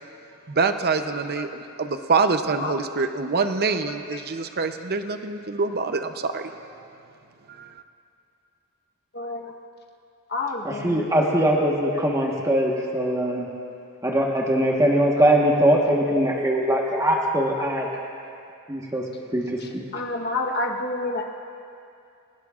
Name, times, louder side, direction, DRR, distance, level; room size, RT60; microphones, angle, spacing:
voice 1, 0.5-6.6 7.5-7.7, right 4 dB, 45° right, 8 dB, 0.7 m, -25 dB
voice 2, 1.1-1.5 2.6-3.0 3.9-4.2 9.1-9.5 10.3-11.1 11.6-13.2 15.7-17.3 17.8-18.0 19.4-21.3, left 2 dB, 50° left, 2 dB, 1.2 m, -32 dB
voice 3, 10.6-13.5 14.0-17.9 18.7-19.0 19.3-19.8, right 1 dB, 15° right, -2 dB, 1.3 m, -21 dB
27.0 x 17.5 x 2.5 m, 2.5 s
head